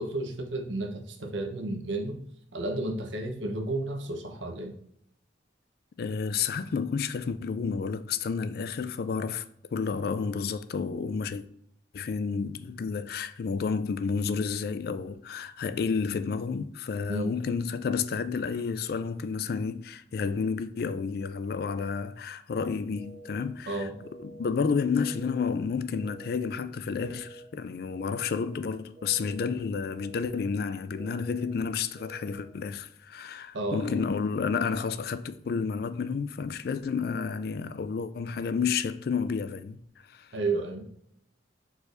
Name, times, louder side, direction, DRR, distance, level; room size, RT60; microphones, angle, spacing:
voice 1, 0.0-2.2 2.5-4.7 17.1-17.4 23.7-24.0 33.5-34.0 40.3-40.9, right 2 dB, 85° right, 0.9 m, -32 dB
voice 2, 6.0-9.5 9.7-11.4 11.9-23.9 24.2-39.8 40.1-40.3, left 5 dB, 55° left, 0.3 m, -30 dB
sound 1, 22.9-23.4 23.9-24.4 24.9-25.4 25.9-26.4 26.9-27.4 27.9-28.4 28.9-29.4 29.9-30.4 30.9-31.4 31.9-32.4, right 2 dB, ahead, 1.3 m, -48 dB
4.7 x 4.2 x 2.6 m
head